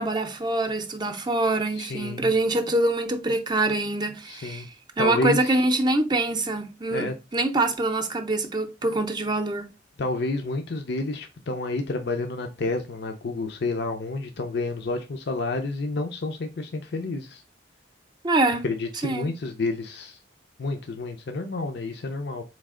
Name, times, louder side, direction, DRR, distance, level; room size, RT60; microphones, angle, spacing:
voice 1, 0.0-4.7 5.0-9.7 18.2-18.7 19.0-19.3, right 2 dB, 25° right, 0.6 m, -25 dB
voice 2, 1.8-2.3 4.3-4.7 5.0-5.5 6.9-7.1 10.0-17.4 18.6-20.2 20.6-22.4, left 3 dB, 65° left, 0.6 m, -29 dB
4.1 x 3.2 x 3.6 m
head